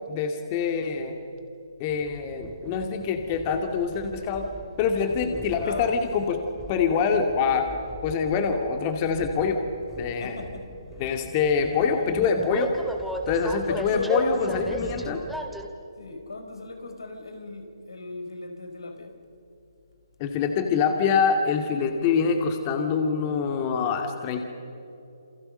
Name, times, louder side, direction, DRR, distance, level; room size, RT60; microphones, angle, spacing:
voice 1, 0.1-1.2 1.8-4.5 4.8-6.4 6.7-7.7 8.0-9.6 10.0-10.4 11.0-12.7 13.3-15.2 20.2-24.5, left 5 dB, 30° left, 2.3 m, -25 dB
Train, 1.9-15.7, equal, ahead, 2.3 m, -39 dB
voice 2, 5.2-5.9 10.0-11.0 11.5-12.2 13.7-15.1 16.0-19.2, left 3 dB, 75° left, 4.7 m, -37 dB
29.0 x 28.5 x 6.7 m
figure-of-eight pair, 140°, 2 cm